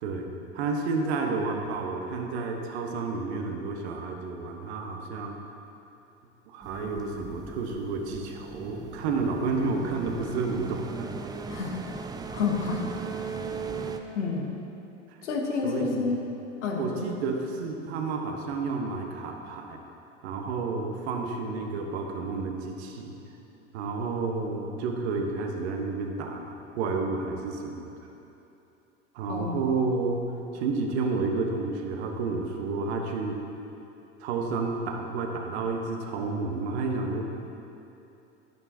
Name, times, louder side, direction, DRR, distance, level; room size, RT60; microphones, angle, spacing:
voice 1, 0.5-5.4 6.5-11.1 15.1-15.2 15.6-16.1 16.8-19.8 20.2-23.1 23.7-27.9 29.1-30.2 30.5-33.4 34.2-37.2, right 4 dB, 60° right, 2 dB, 1.3 m, -30 dB
sound 1, 6.6-14.0, right 5 dB, 10° right, 0.4 m, -38 dB
voice 2, 12.3-12.9 14.1-14.6 15.2-16.2 16.6-17.1 29.3-29.6, left 5 dB, 70° left, 1 dB, 1.4 m, -29 dB
11.0 x 10.5 x 2.8 m, 2.9 s
figure-of-eight pair, 80°, 37 cm